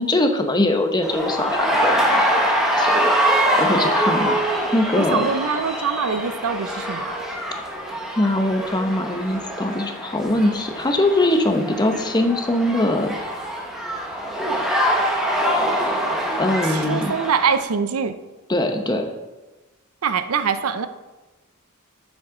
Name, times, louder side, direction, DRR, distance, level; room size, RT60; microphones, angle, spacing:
voice 1, 0.0-5.2 8.2-13.1 16.4-17.1 18.5-19.1, left 1 dB, 20° left, 5 dB, 0.8 m, -22 dB
sound 1, 1.0-17.6, equal, ahead, 1.2 m, -24 dB
voice 2, 5.0-7.2 16.7-18.2 20.0-20.9, right 6 dB, 80° right, 11 dB, 0.6 m, -23 dB
9.8 x 7.3 x 3.8 m, 1.1 s
head